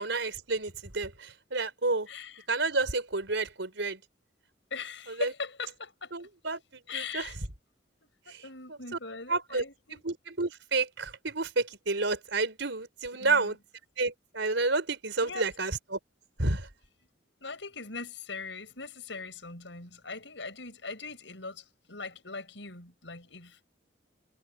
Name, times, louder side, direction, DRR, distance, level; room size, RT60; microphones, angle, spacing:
voice 1, 0.0-2.1 2.5-4.0 5.1-5.3 6.1-7.3 8.3-8.8 9.3-9.6 9.9-13.6 14.0-16.0 16.4-16.7, right 3 dB, 75° right, 4.2 m, -30 dB
voice 2, 2.1-2.4 4.7-6.3 6.9-7.3 8.2-10.0 13.2-13.5 15.2-15.5 17.4-23.7, left 4 dB, 75° left, 6.4 m, -40 dB
head